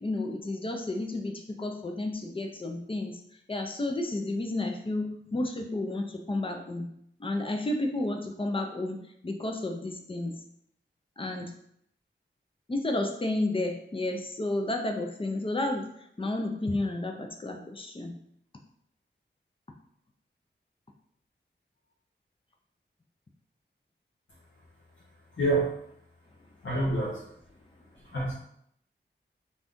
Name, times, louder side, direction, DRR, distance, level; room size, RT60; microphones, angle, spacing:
voice 1, 0.0-3.2 3.5-6.9 7.2-10.3 11.2-11.5 12.7-15.9 16.2-18.1, left 2 dB, 25° left, 3 dB, 0.5 m, -31 dB
voice 2, 25.4-25.7 26.6-27.3 28.0-28.3, right 2 dB, 85° left, -7 dB, 0.7 m, -27 dB
2.6 x 2.3 x 3.5 m, 0.71 s
wide cardioid pair, 80°, 20 cm